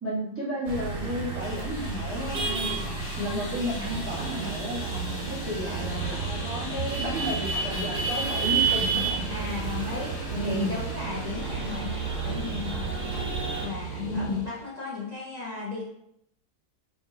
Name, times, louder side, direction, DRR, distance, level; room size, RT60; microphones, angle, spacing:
voice 1, 0.0-2.9 3.2-9.3 10.3-10.7 14.0-14.4, equal, 10° right, -8 dB, 0.9 m, -32 dB
sound 1, 0.6-13.7, right 4 dB, 45° right, 0.6 m, -32 dB
sound 2, 1.4-14.7, left 2 dB, 55° left, 1.1 m, -43 dB
sound 3, 3.8-14.5, right 8 dB, 75° right, 1.1 m, -36 dB
voice 2, 9.3-15.9, left 4 dB, 35° left, -6 dB, 0.7 m, -36 dB
4.8 x 2.5 x 2.7 m, 0.77 s
omnidirectional pair, 1.7 m